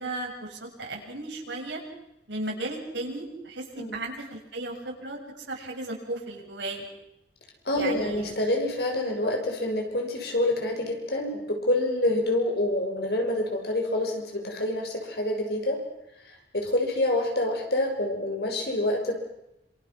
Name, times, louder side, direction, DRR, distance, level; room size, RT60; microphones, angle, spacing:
voice 1, 0.0-1.8 2.3-5.2 5.5-6.8 7.8-8.3, right 2 dB, 85° right, 0 dB, 7.5 m, -35 dB
voice 2, 7.6-15.8 16.3-19.1, left 1 dB, 60° left, 2 dB, 6.5 m, -27 dB
28.0 x 27.5 x 6.2 m, 0.86 s
head